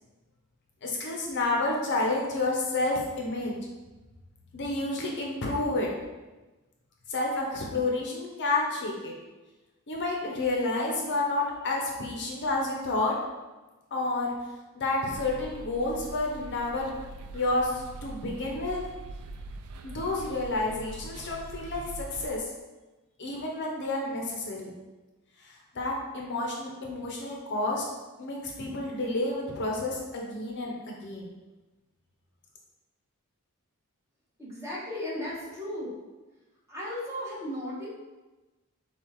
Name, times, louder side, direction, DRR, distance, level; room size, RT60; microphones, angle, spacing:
voice 1, 0.8-3.6 4.5-5.9 7.1-9.1 9.9-13.2 13.9-14.3 14.7-16.9 17.3-18.8 19.8-22.4 23.2-24.8 25.4-27.8 28.2-31.3, left 2 dB, 55° left, -1 dB, 0.7 m, -30 dB
sound 1, 15.1-22.4, right 3 dB, 70° right, 0.3 m, -43 dB
voice 2, 34.4-36.0 36.7-37.9, left 1 dB, 10° right, -6 dB, 1.2 m, -35 dB
7.1 x 2.4 x 3.0 m, 1.2 s
head